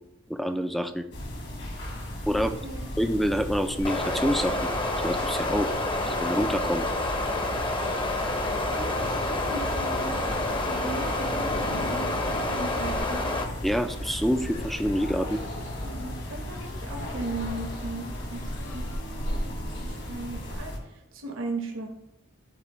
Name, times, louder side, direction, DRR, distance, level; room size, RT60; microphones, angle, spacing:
voice 1, 0.3-1.1 2.3-2.5 3.0-4.6 5.0-5.7 6.1-6.9 13.6-15.4, equal, ahead, 8 dB, 0.4 m, -27 dB
sound 1, 1.1-20.8, equal, 60° left, 1.7 m, -35 dB
voice 2, 2.3-2.8 8.7-10.2 10.6-13.4 15.8-18.9 19.2-21.9, right 2 dB, 70° right, 2 dB, 1.1 m, -38 dB
sound 2, 3.8-13.4, left 2 dB, 25° left, 0.7 m, -29 dB
sound 3, 6.8-19.0, left 1 dB, 80° left, 0.9 m, -43 dB
12.0 x 4.1 x 3.1 m, 0.82 s
head